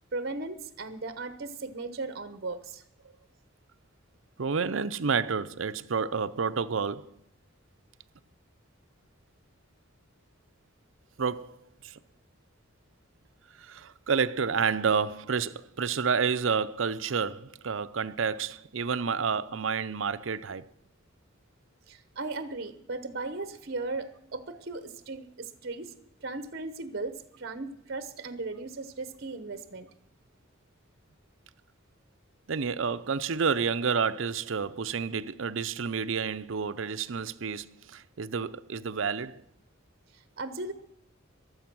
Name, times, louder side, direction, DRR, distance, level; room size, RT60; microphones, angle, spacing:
voice 1, 0.1-2.8 21.9-25.9 26.2-29.9 40.4-40.7, right 3 dB, 50° right, 1.0 m, -37 dB
voice 2, 4.4-7.1 11.2-11.6 11.8-11.9 13.7-20.6 32.5-39.4, right 5 dB, 65° right, 0.6 m, -29 dB
22.5 x 7.9 x 6.1 m
head